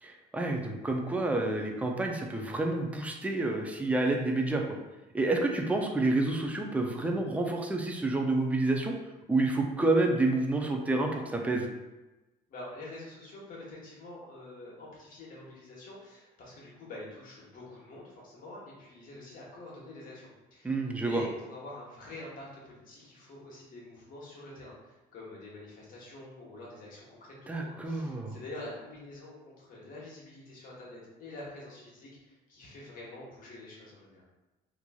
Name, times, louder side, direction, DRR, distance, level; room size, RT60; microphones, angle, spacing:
voice 1, 0.0-4.8 5.1-8.9 9.3-11.7 20.6-21.2 27.5-28.4, right 2 dB, 10° right, 2 dB, 0.3 m, -29 dB
voice 2, 12.5-34.2, left 2 dB, 55° left, -5 dB, 1.0 m, -46 dB
3.0 x 2.5 x 2.3 m, 1.1 s
cardioid pair, 110°, 17 cm